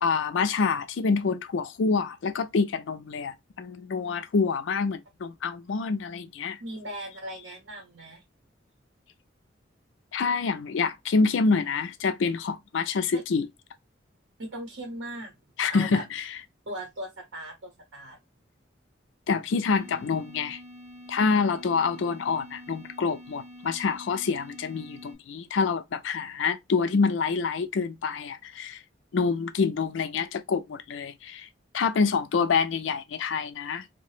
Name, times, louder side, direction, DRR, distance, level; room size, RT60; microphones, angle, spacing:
voice 1, 0.0-6.6 10.1-13.5 15.6-16.2 19.3-20.6 21.1-28.8 29.1-31.5 31.7-33.9, left 4 dB, 75° left, 0.4 m, -27 dB
voice 2, 6.6-8.2 13.1-13.2 14.4-15.3 15.7-16.0 16.7-18.2, right 1 dB, 80° right, 0.7 m, -38 dB
sound 1, 19.8-25.1, left 1 dB, 25° right, 0.8 m, -47 dB
2.8 x 2.0 x 3.1 m
head